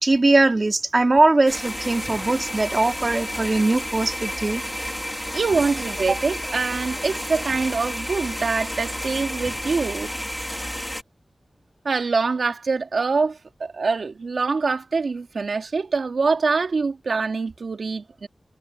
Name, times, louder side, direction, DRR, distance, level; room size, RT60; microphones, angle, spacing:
voice 1, 0.0-4.6, right 2 dB, 45° right, 3.4 m, -20 dB
sound 1, 1.5-11.0, equal, 5° left, 3.5 m, -31 dB
voice 2, 5.3-10.1 11.8-18.3, right 4 dB, 85° right, 2.5 m, -24 dB
cardioid pair, 45°, 0 cm